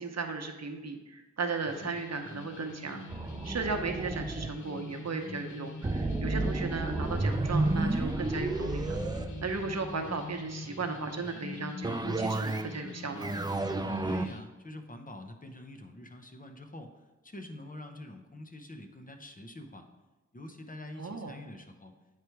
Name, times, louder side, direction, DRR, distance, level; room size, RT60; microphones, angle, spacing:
voice 1, 0.0-3.0 3.4-9.0 9.4-13.3 21.0-21.3, right 4 dB, 60° right, 5 dB, 0.8 m, -36 dB
sound 1, 1.7-14.4, left 2 dB, 70° left, 0.8 m, -44 dB
sound 2, 3.1-4.5 5.8-10.1 11.8-12.8 13.1-14.3, right 2 dB, 15° right, 0.3 m, -31 dB
voice 2, 14.0-17.0 17.2-19.9 20.3-21.9, left 1 dB, 25° left, 5 dB, 0.7 m, -46 dB
9.1 x 3.3 x 4.6 m, 1.2 s
wide cardioid pair, 60°, 30 cm